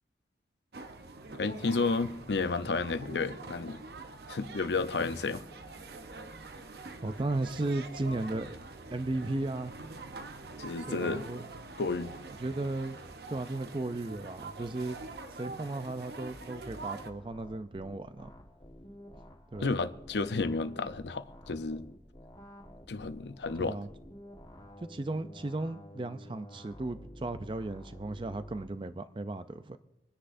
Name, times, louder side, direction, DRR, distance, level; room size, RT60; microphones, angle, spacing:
sound 1, 0.7-17.1, right 3 dB, 65° right, 0.7 m, -45 dB
voice 1, 1.4-3.8 4.3-5.4 10.6-11.2 11.8-12.1 19.6-21.8 22.9-23.8, left 3 dB, 80° left, 0.6 m, -31 dB
voice 2, 7.0-8.6 8.9-9.7 10.9-11.4 12.4-13.0 13.3-15.0 15.3-18.3 19.5-19.7 23.5-23.9 24.9-29.8, right 2 dB, 30° right, 0.4 m, -35 dB
sound 2, 16.3-28.6, equal, 25° left, 1.4 m, -51 dB
26.5 x 10.0 x 2.6 m
head